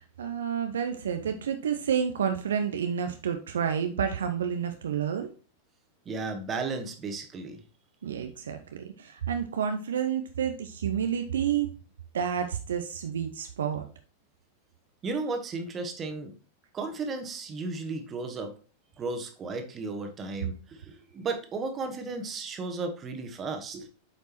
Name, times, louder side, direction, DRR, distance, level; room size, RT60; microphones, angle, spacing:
voice 1, 0.0-5.3 8.0-11.7 12.1-13.9, right 8 dB, 65° right, 6 dB, 0.6 m, -30 dB
voice 2, 6.0-7.6 15.0-16.3 16.7-18.5 19.0-23.9, right 3 dB, 25° right, 5 dB, 1.3 m, -34 dB
8.3 x 5.2 x 3.0 m, 0.38 s
figure-of-eight pair, 90°, 0 cm